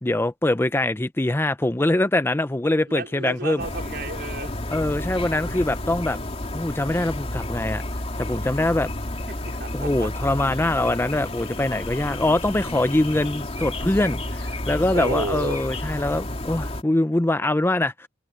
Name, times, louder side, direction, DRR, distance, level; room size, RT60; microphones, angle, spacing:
voice 1, 0.0-3.6 4.7-6.2 6.5-7.8 8.2-8.9 9.7-18.1, left 1 dB, 10° left, 0.5 m, -23 dB
voice 2, 2.9-4.6 9.3-10.1 14.9-15.6, right 2 dB, 60° right, 4.1 m, -32 dB
sound 1, 3.6-16.8, left 1 dB, 35° left, 3.1 m, -31 dB
head